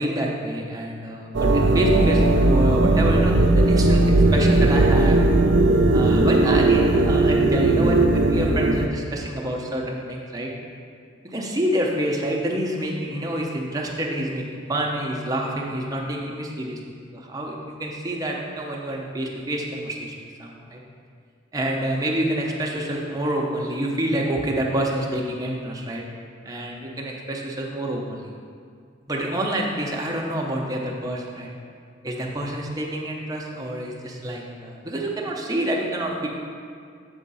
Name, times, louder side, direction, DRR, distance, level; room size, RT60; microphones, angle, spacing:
voice 1, 0.0-5.2 5.9-10.5 11.2-16.8 17.1-20.1 20.4-20.8 21.5-26.0 26.4-28.3 29.1-31.5 32.0-36.3, right 1 dB, 20° right, -1 dB, 0.7 m, -27 dB
sound 1, 1.3-8.9, right 2 dB, 75° right, 0.5 m, -18 dB
7.7 x 3.7 x 5.5 m, 2.2 s
head